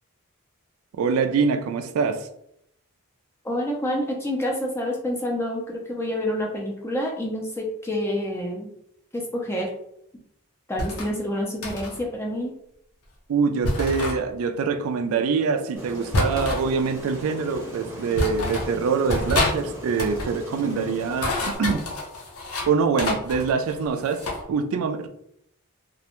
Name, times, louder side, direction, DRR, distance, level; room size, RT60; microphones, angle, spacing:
voice 1, 1.0-2.3 13.3-21.9 22.7-24.2 24.5-25.1, right 5 dB, 70° right, 0.3 m, -24 dB
voice 2, 3.4-8.7 9.1-9.7 10.7-12.5, left 1 dB, 10° left, 0.4 m, -28 dB
sound 1, 10.8-11.1 11.6-12.0 13.6-14.2 16.1-16.7 17.5-17.6 18.2-18.7 19.1-19.6 19.9-20.3 21.0-22.7 23.0-24.4, left 2 dB, 85° left, 0.6 m, -27 dB
Aircraft, 15.7-21.5, right 1 dB, 10° right, 0.7 m, -40 dB
2.4 x 2.1 x 2.9 m
head